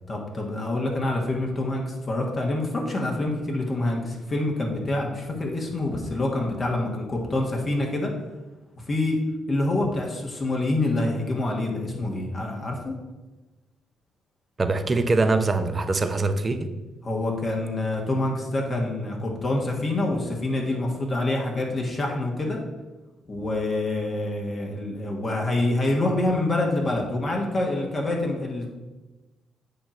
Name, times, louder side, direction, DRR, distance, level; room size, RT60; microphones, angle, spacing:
voice 1, 0.1-8.1 8.9-9.2 9.5-12.9 17.0-22.6 23.3-28.7, left 2 dB, 35° left, 0 dB, 1.5 m, -26 dB
voice 2, 14.6-16.7, right 3 dB, 30° right, 8 dB, 0.7 m, -23 dB
8.3 x 2.9 x 6.2 m, 1.1 s
cardioid pair, 90°, 0 cm